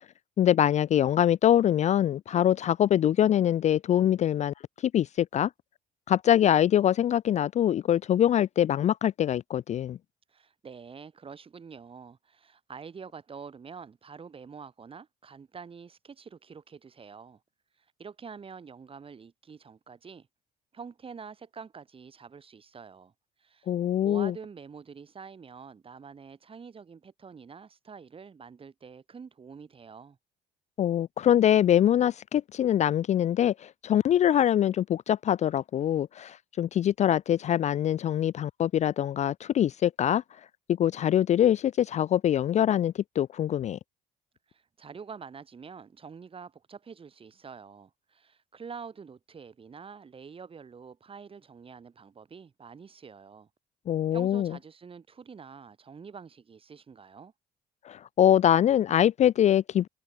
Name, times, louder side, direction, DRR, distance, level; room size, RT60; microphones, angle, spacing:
voice 1, 0.4-4.5 4.8-5.5 6.1-10.0 23.7-24.3 30.8-40.2 40.7-43.8 53.9-54.5 57.8-59.9, left 10 dB, 45° left, 0.4 m, -24 dB
voice 2, 10.3-17.4 18.0-20.3 20.7-23.1 23.4-23.7 24.0-30.2 44.5-53.5 54.1-57.3, right 6 dB, 35° right, 5.6 m, -46 dB
cardioid pair, 110°, 17 cm